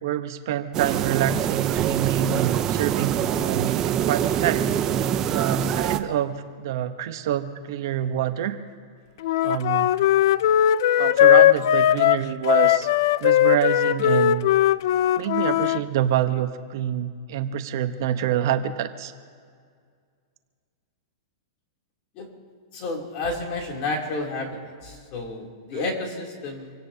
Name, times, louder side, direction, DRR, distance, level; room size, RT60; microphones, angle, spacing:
voice 1, 0.0-4.7 5.3-8.6 9.4-9.9 11.0-12.9 13.2-14.4 15.2-19.1, right 10 dB, 55° right, 9 dB, 0.9 m, -26 dB
sound 1, 0.7-6.0, right 10 dB, 25° right, 0.6 m, -24 dB
Wind instrument woodwind instrument, 9.2-15.8, left 12 dB, 60° left, 0.4 m, -19 dB
voice 2, 22.7-26.7, left 2 dB, 35° left, 0 dB, 3.0 m, -31 dB
26.5 x 17.0 x 2.8 m, 2.1 s
supercardioid pair, 160°, 2 cm